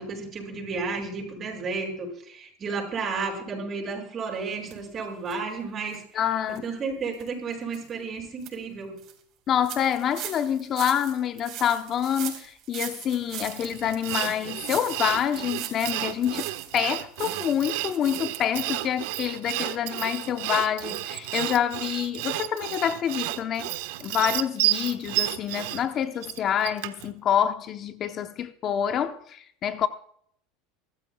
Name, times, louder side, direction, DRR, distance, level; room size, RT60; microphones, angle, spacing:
voice 1, 0.0-6.2 6.5-9.0, right 4 dB, 35° right, 6.9 m, -32 dB
sound 1, 4.7-4.8 5.3-5.4 5.9-6.0 6.5-6.6 7.1-7.3 7.7-7.8 8.2-8.5 9.0-9.1 9.6-16.8 17.1-18.4 18.7-18.8 19.0-19.1, right 11 dB, 50° right, 4.5 m, -40 dB
voice 2, 6.1-6.6 9.5-23.7 24.0-29.9, left 9 dB, 40° left, 0.9 m, -27 dB
Sawing, 13.5-27.1, right 17 dB, 70° right, 1.3 m, -31 dB
24.0 x 14.0 x 2.4 m
hypercardioid pair, 100°, 0 cm